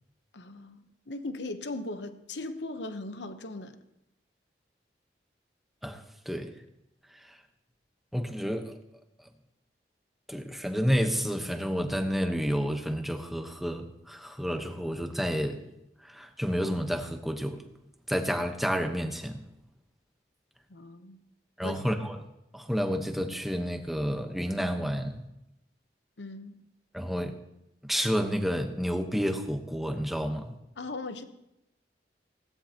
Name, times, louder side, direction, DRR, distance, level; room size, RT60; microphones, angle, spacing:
voice 1, 0.3-3.8 20.7-21.2 21.6-22.1 26.2-26.6 30.8-31.2, left 2 dB, 75° left, 9 dB, 0.9 m, -39 dB
voice 2, 5.8-6.5 8.1-8.7 10.3-15.6 16.0-17.6 18.1-19.4 21.6-22.2 22.5-25.2 26.9-27.4 27.8-30.5, equal, ahead, 5 dB, 1.0 m, -30 dB
19.5 x 17.0 x 2.9 m, 0.87 s
head